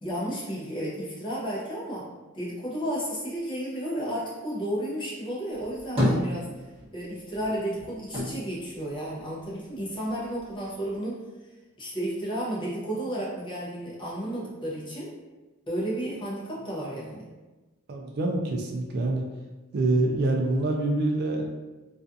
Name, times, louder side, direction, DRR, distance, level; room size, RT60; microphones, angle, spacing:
voice 1, 0.0-2.1 2.3-6.5 6.9-11.2 11.8-15.1 15.7-17.3, right 1 dB, 20° left, -6 dB, 0.6 m, -32 dB
sound 1, 5.5-7.0 7.3-9.7 10.1-11.0, left 1 dB, 25° right, 0.9 m, -30 dB
voice 2, 17.9-19.2 19.7-21.5, right 2 dB, 45° right, 1 dB, 0.3 m, -26 dB
2.4 x 2.3 x 2.5 m, 1.2 s
head